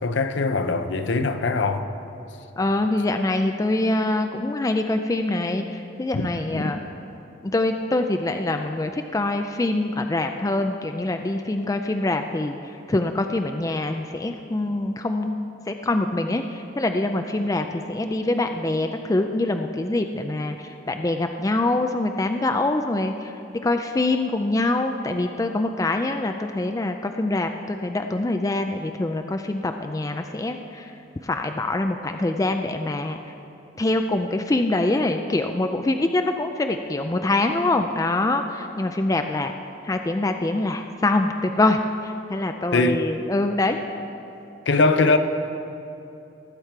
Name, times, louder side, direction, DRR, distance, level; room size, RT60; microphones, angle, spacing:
voice 1, 0.0-1.9 6.1-6.7 42.7-43.0 44.7-45.2, left 3 dB, 65° left, 8 dB, 0.6 m, -22 dB
voice 2, 2.6-6.8 7.4-12.6 12.9-15.3 15.7-23.3 23.6-30.9 31.2-33.2 33.8-39.5 39.8-43.8, left 2 dB, 15° left, 6 dB, 0.4 m, -24 dB
19.0 x 7.4 x 4.6 m, 2.8 s
head